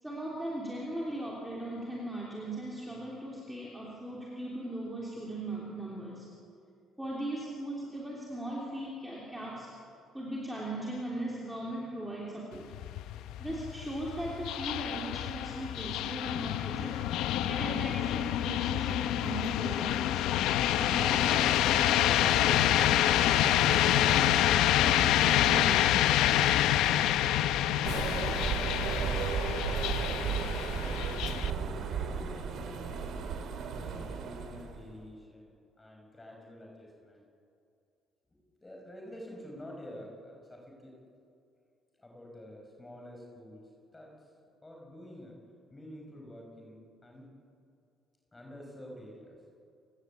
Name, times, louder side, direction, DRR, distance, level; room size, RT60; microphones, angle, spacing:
voice 1, 0.0-6.3 7.0-9.7 10.1-12.7 13.4-17.0 17.4-20.3 20.8-26.0, right 1 dB, 5° right, -4 dB, 3.3 m, -38 dB
sound 1, 12.5-31.5, left 12 dB, 75° left, 0.9 m, -27 dB
sound 2, 27.8-34.8, right 6 dB, 50° right, 2.7 m, -34 dB
voice 2, 28.5-31.0 31.4-32.9 33.6-37.3 38.3-40.9 42.0-43.6 43.9-44.3 44.6-45.4 45.7-47.3 48.3-49.4, left 1 dB, 10° left, 0 dB, 5.5 m, -49 dB
29.5 x 18.0 x 8.4 m, 2.5 s
cardioid pair, 175°, 0 cm